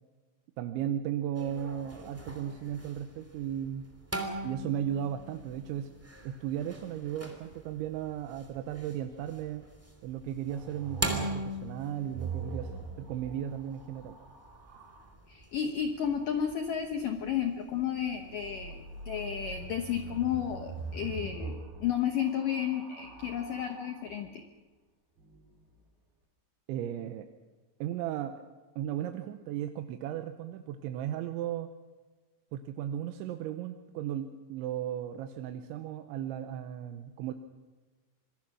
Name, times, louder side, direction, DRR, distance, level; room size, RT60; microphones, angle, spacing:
voice 1, 0.6-3.9 4.4-5.9 6.2-9.7 10.0-14.1 26.7-27.3 27.8-28.3 28.8-31.7 32.5-37.3, right 10 dB, 80° right, 7 dB, 3.1 m, -35 dB
sound 1, 1.4-21.2, right 1 dB, 5° right, 1.5 m, -43 dB
sound 2, 10.5-15.1 18.1-24.2 25.2-25.8, right 4 dB, 55° right, 5.1 m, -43 dB
voice 2, 15.3-18.8 19.1-24.5, left 9 dB, 80° left, 5 dB, 1.9 m, -32 dB
26.5 x 21.0 x 6.1 m, 1.3 s
omnidirectional pair, 5.6 m